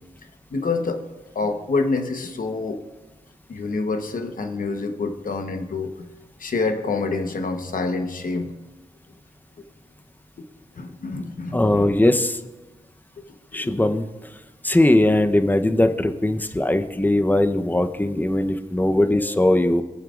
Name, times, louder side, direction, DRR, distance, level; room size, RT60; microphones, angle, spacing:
voice 1, 0.5-1.0 1.3-2.8 3.5-6.1 6.4-8.5 10.7-11.9 13.2-13.3 13.5-13.8, left 3 dB, 70° left, 7 dB, 1.0 m, -27 dB
voice 2, 11.5-12.4 13.5-14.1 14.6-19.8, left 1 dB, 10° left, 7 dB, 0.8 m, -20 dB
19.5 x 8.9 x 2.5 m, 1.1 s
cardioid pair, 60°, 14 cm